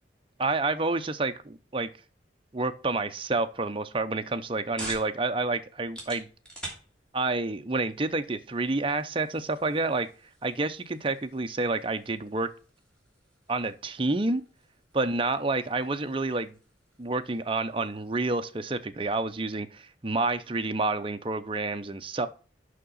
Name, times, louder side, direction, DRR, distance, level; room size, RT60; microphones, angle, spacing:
voice 1, 0.4-1.9 2.5-6.3 7.1-10.1 10.4-12.5 13.5-14.4 15.0-16.5 17.0-22.3, right 3 dB, 30° right, 0.7 m, -29 dB
sound 1, 4.1-19.3, right 1 dB, 5° left, 2.8 m, -49 dB
6.5 x 5.9 x 5.5 m
head